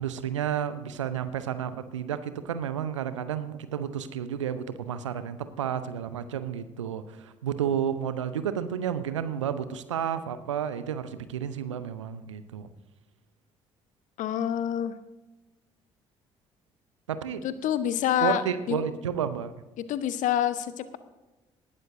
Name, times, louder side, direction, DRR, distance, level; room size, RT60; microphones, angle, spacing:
voice 1, 0.0-12.7 17.1-17.4 18.2-19.5, right 8 dB, 80° right, 12 dB, 0.7 m, -31 dB
voice 2, 14.2-15.0 17.4-18.4 18.7-18.8 19.8-21.0, left 10 dB, 55° left, 13 dB, 0.9 m, -27 dB
19.0 x 12.0 x 2.7 m, 1.1 s
figure-of-eight pair, 45°, 16 cm